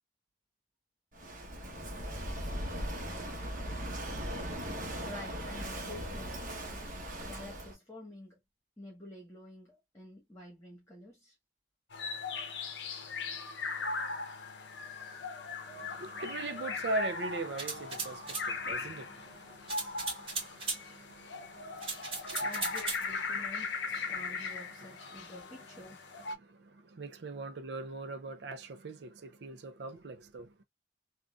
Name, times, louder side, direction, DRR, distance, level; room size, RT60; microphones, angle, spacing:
Walk footsteps / Wind / Waves surf, 1.1-7.8, equal, 50° right, 1.1 m, -39 dB
voice 1, 5.0-8.4 8.8-11.3 18.5-18.9 22.2-26.1, left 1 dB, 15° left, 1.3 m, -50 dB
sound 1, 11.9-26.3, left 4 dB, 80° left, 0.6 m, -39 dB
voice 2, 15.7-22.5 26.3-30.6, right 2 dB, 70° right, 0.5 m, -41 dB
sound 2, 17.6-18.5 19.7-20.8 21.8-23.0, right 4 dB, 35° right, 2.1 m, -37 dB
3.7 x 2.4 x 2.3 m
head